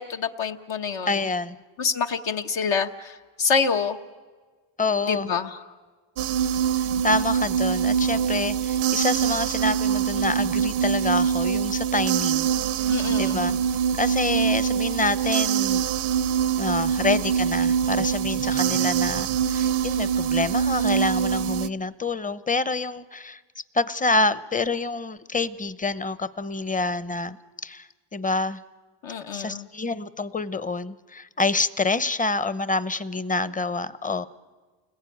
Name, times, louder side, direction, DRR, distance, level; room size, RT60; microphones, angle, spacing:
voice 1, 0.0-1.1 1.8-4.0 5.0-5.5 12.9-13.4 29.0-29.7, left 5 dB, 65° left, 4 dB, 1.3 m, -26 dB
voice 2, 1.1-1.6 4.8-5.3 6.8-12.5 12.8-12.9 13.2-13.6 14.0-15.8 16.6-23.4 23.7-27.4 27.6-28.6 29.3-34.3, left 3 dB, 15° left, 15 dB, 0.8 m, -27 dB
sound 1, 6.2-21.7, right 8 dB, 70° right, 0.7 m, -24 dB
29.5 x 20.5 x 9.3 m, 1.4 s
cardioid pair, 105°, 49 cm